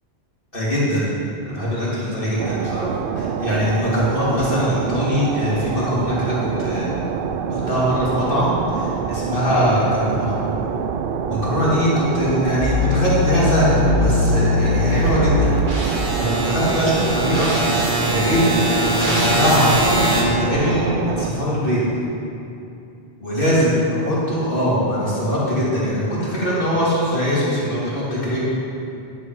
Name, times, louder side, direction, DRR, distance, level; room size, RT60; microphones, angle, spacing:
voice 1, 0.5-1.1 1.5-2.9 3.1-7.0 7.5-10.4 11.3-15.5 16.2-21.8 23.2-23.8 24.0-28.4, equal, 55° left, -8 dB, 2.9 m, -21 dB
sound 1, 2.4-21.3, right 7 dB, 65° right, 0.7 m, -26 dB
sound 2, 12.6-20.2, left 1 dB, 50° right, 1.6 m, -21 dB
10.5 x 9.5 x 4.7 m, 2.7 s
omnidirectional pair, 1.1 m